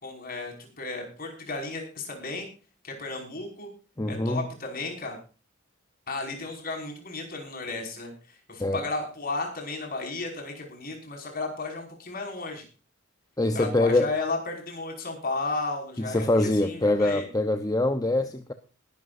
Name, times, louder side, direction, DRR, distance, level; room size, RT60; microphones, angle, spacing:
voice 1, 0.0-2.5 2.8-3.7 4.1-5.2 6.1-12.7 13.5-17.3, left 3 dB, 45° left, 2 dB, 5.6 m, -34 dB
voice 2, 4.0-4.4 8.6-8.8 13.4-14.1 16.0-18.5, left 2 dB, 20° left, 8 dB, 0.8 m, -24 dB
20.5 x 12.5 x 2.6 m, 0.36 s
head